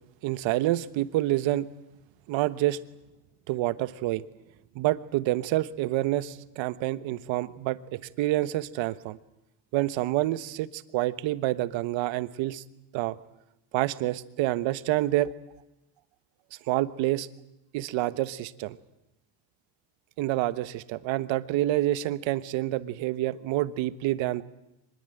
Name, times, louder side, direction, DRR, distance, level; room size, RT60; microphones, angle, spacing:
voice 1, 0.2-1.7 2.3-2.8 3.5-4.2 4.7-9.2 9.7-12.6 12.9-13.2 13.7-15.3 16.7-17.3 17.7-18.8 20.2-24.4, right 15 dB, 65° right, 14 dB, 1.3 m, -28 dB
24.5 x 21.0 x 9.1 m, 0.89 s
cardioid pair, 130°, 49 cm